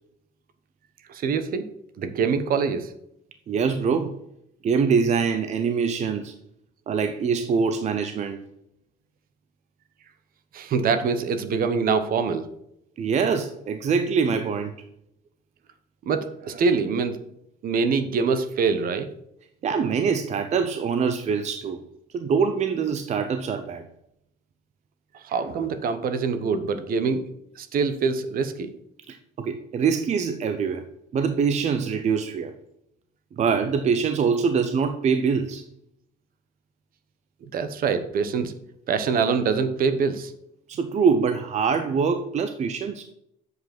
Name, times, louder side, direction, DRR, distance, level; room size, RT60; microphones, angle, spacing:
voice 1, 1.1-1.6 2.0-2.9 10.5-12.5 16.1-17.2 17.6-19.1 25.1-27.2 27.6-28.7 37.4-38.5 38.9-40.3, right 5 dB, 60° right, 11 dB, 1.0 m, -24 dB
voice 2, 3.5-4.2 4.6-6.3 6.9-8.4 13.0-14.7 19.6-21.8 22.1-23.8 29.1-30.8 31.1-32.5 33.4-35.6 40.7-43.0, right 6 dB, 40° right, 8 dB, 0.7 m, -24 dB
7.9 x 5.3 x 6.0 m, 0.77 s
cardioid pair, 110°, 17 cm